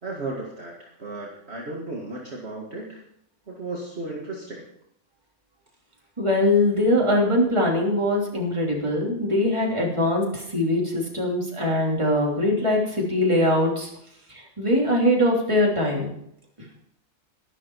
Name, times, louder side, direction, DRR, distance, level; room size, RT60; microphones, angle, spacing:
voice 1, 0.0-3.0 3.5-4.7, right 2 dB, 45° right, -3 dB, 2.3 m, -35 dB
voice 2, 6.2-13.9 14.3-16.1, left 1 dB, 20° right, -2 dB, 3.3 m, -22 dB
12.5 x 12.0 x 4.7 m, 0.71 s
omnidirectional pair, 1.5 m